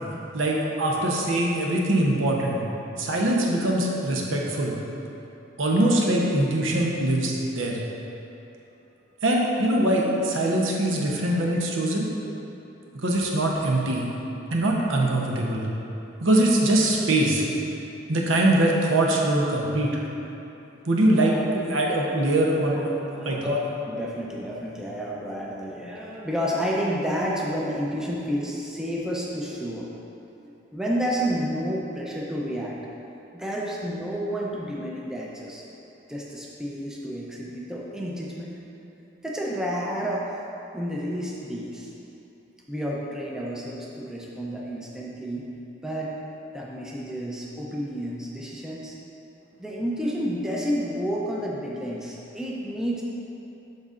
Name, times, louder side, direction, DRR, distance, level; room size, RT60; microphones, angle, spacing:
voice 1, 0.3-2.6 3.0-4.8 5.6-7.8 9.2-12.1 13.0-14.1 14.5-15.7 16.2-17.4 18.1-20.0 20.9-21.3 21.7-22.9 23.2-23.6, right 1 dB, 80° right, -2 dB, 0.8 m, -22 dB
voice 2, 23.1-23.5 23.9-29.9 30.4-32.8 33.3-35.6 36.1-38.5 39.2-40.3 40.7-41.9 42.7-45.5 45.8-46.2 46.5-49.0 49.6-53.0, equal, 5° right, -4 dB, 0.5 m, -30 dB
11.5 x 4.0 x 2.5 m, 2.9 s
head